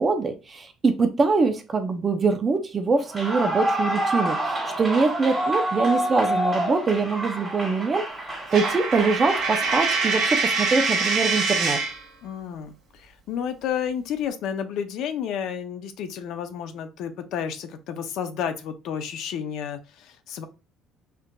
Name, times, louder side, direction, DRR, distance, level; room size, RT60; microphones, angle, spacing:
voice 1, 0.0-8.0 8.5-11.8, right 4 dB, 25° right, 6 dB, 0.6 m, -23 dB
Clapping / Cheering / Applause, 3.0-10.4, right 1 dB, 5° right, 1.8 m, -28 dB
Coin (dropping), 8.5-12.0, right 4 dB, 60° right, 1.1 m, -24 dB
voice 2, 12.2-20.4, left 8 dB, 70° left, 9 dB, 0.5 m, -31 dB
4.4 x 2.5 x 2.2 m, 0.31 s
cardioid pair, 130°, 0 cm